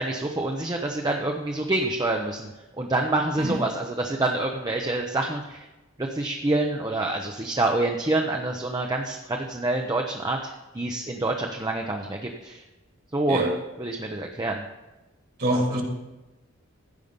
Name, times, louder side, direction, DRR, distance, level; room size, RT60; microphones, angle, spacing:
voice 1, 0.0-2.5 2.8-5.6 6.0-12.6 13.1-13.4 13.8-14.6 15.5-15.8, right 2 dB, 20° right, 2 dB, 0.7 m, -27 dB
voice 2, 15.4-15.8, right 1 dB, 50° right, 2 dB, 2.0 m, -24 dB
15.0 x 5.5 x 5.3 m, 1.1 s
head